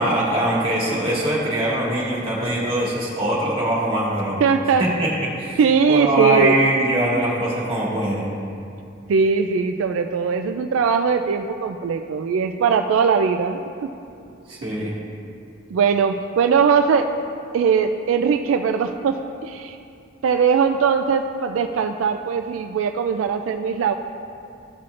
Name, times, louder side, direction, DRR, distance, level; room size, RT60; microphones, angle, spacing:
voice 1, 0.0-4.4 4.8-5.6 5.9-8.2 14.5-14.9, right 1 dB, 25° right, -8 dB, 1.8 m, -22 dB
voice 2, 4.4-4.8 5.6-6.5 9.1-13.9 15.7-17.1 17.5-19.2 19.4-19.8 20.2-23.9, right 6 dB, 80° right, 6 dB, 0.3 m, -20 dB
13.0 x 5.8 x 2.5 m, 2.6 s
head